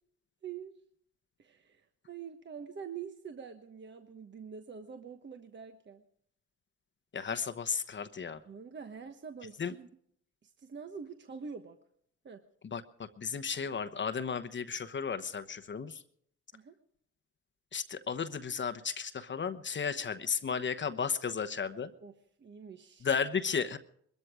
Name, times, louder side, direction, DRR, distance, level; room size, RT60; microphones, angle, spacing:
voice 1, 0.4-0.7 1.4-6.0 8.4-9.9 10.4-11.8 12.2-12.4 16.5-16.8 22.0-22.1 22.4-23.1, right 6 dB, 35° right, 7 dB, 1.2 m, -45 dB
voice 2, 7.1-8.4 9.6-9.7 12.7-12.8 13.2-16.0 17.7-21.9 23.0-23.8, left 6 dB, 40° left, 10 dB, 1.0 m, -34 dB
21.5 x 14.0 x 4.9 m, 0.67 s
cardioid pair, 90°, 30 cm